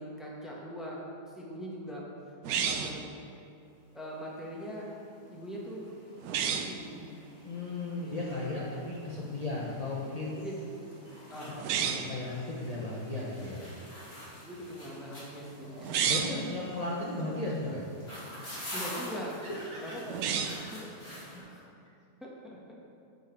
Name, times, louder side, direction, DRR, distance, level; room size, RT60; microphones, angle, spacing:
voice 1, 0.0-2.1 2.5-3.2 3.9-5.9 6.4-7.1 8.0-8.2 10.4-10.5 11.3-11.8 14.4-16.1 18.7-20.9 21.3-21.6 22.2-22.7, equal, ahead, -4 dB, 0.8 m, -42 dB
sound 1, 2.4-3.1 6.2-6.8 11.5-12.2 15.8-16.5 20.0-20.7, right 7 dB, 70° right, 1.0 m, -30 dB
sound 2, 3.9-4.0 4.3-21.4, equal, 40° left, 1.9 m, -47 dB
voice 2, 7.4-10.3 11.7-13.6 15.6-17.9 19.4-20.0 20.2-20.7, left 2 dB, 55° left, -5 dB, 0.4 m, -36 dB
7.9 x 5.0 x 4.4 m, 2.6 s
omnidirectional pair, 1.8 m